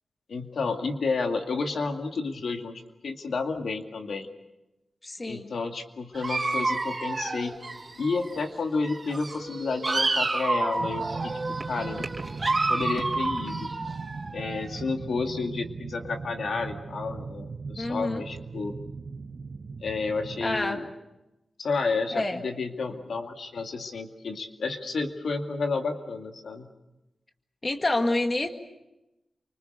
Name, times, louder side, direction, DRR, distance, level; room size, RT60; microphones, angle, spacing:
voice 1, 0.3-4.3 5.2-7.5 8.0-11.4 11.7-12.1 12.7-13.7 14.3-18.7 19.8-20.9 21.6-26.7, left 4 dB, 80° left, 4 dB, 2.3 m, -31 dB
voice 2, 5.0-5.5 17.8-18.3 20.4-20.8 22.1-22.4 27.6-28.5, left 2 dB, 30° left, 5 dB, 1.9 m, -27 dB
Dog, 6.1-8.5 8.8-14.8, right 3 dB, 30° right, 3.5 m, -30 dB
sound 1, 10.8-20.7, right 4 dB, 50° right, 1.2 m, -38 dB
29.0 x 25.5 x 6.7 m, 0.95 s
wide cardioid pair, 145°, 0 cm